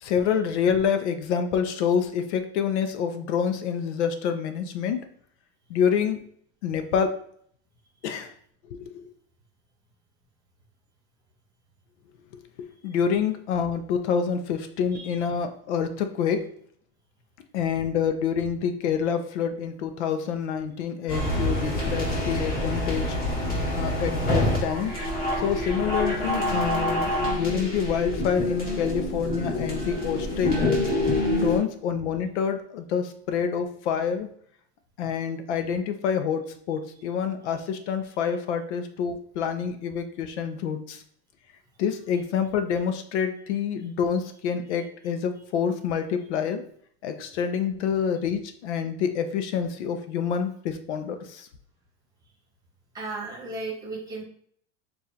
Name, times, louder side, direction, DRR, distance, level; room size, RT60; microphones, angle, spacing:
voice 1, 0.0-5.0 5.7-6.2 6.6-7.2 8.0-8.3 8.7-8.9 12.6-16.5 17.5-23.2 23.7-25.0 25.4-30.8 31.3-34.3 35.0-41.0 41.8-46.6 47.0-51.5, left 7 dB, 85° left, 8 dB, 0.7 m, -27 dB
sound 1, 21.1-31.6, left 1 dB, 25° left, 1.8 m, -26 dB
voice 2, 52.9-54.2, right 3 dB, 10° right, -2 dB, 1.1 m, -35 dB
6.8 x 2.6 x 2.8 m, 0.63 s
supercardioid pair, 160°, 33 cm